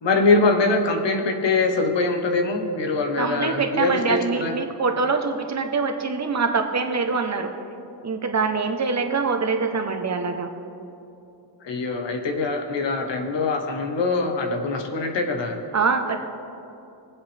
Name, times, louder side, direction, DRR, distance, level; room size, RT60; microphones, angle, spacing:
voice 1, 0.0-4.6 11.6-15.6, left 3 dB, 75° left, 5 dB, 1.4 m, -23 dB
voice 2, 3.2-7.5 8.0-10.5 15.7-16.2, right 4 dB, 40° right, 4 dB, 1.1 m, -24 dB
22.0 x 7.8 x 3.5 m, 2.7 s
wide cardioid pair, 110°, 44 cm